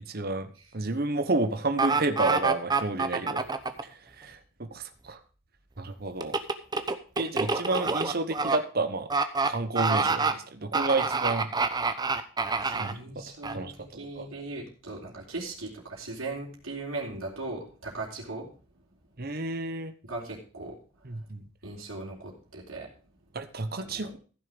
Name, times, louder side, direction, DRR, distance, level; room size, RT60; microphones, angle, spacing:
voice 1, 0.0-3.5 3.8-5.2 5.8-6.3 7.2-9.1 9.5-11.5 12.8-13.0 13.5-13.7 14.2-14.3 19.2-19.9 21.1-21.4 23.3-24.2, right 2 dB, 45° right, 9 dB, 1.0 m, -30 dB
sound 1, 1.8-3.8 6.2-8.6 9.1-9.5 9.8-10.3 10.7-12.9 13.4-13.5, right 4 dB, 20° right, 0.8 m, -26 dB
voice 2, 12.6-18.8 20.0-21.2 21.6-22.9 23.8-24.1, right 2 dB, 80° right, -3 dB, 3.7 m, -39 dB
15.0 x 6.4 x 5.2 m, 0.38 s
head